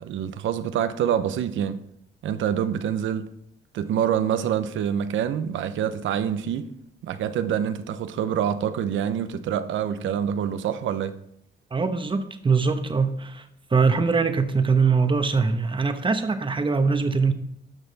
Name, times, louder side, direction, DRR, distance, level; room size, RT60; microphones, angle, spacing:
voice 1, 0.0-1.8 2.2-3.3 3.7-6.7 7.0-11.2, right 9 dB, 75° right, 0.8 m, -26 dB
voice 2, 11.7-17.3, right 4 dB, 25° right, 1.0 m, -22 dB
12.0 x 5.8 x 4.1 m
cardioid pair, 90°, 20 cm